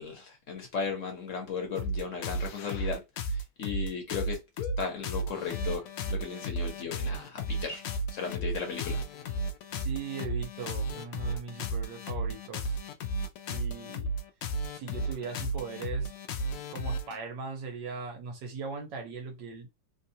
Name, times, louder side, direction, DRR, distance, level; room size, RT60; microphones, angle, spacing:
voice 1, 0.0-3.0 3.6-4.4 4.8-5.8 6.1-7.8 8.1-9.0, left 5 dB, 50° left, 1.2 m, -35 dB
sound 1, 1.8-17.2, right 1 dB, 70° left, 0.8 m, -33 dB
voice 2, 9.8-12.8 13.5-14.1 14.7-16.1 16.7-19.7, right 5 dB, 80° right, 1.7 m, -39 dB
3.5 x 2.3 x 2.7 m
omnidirectional pair, 1.9 m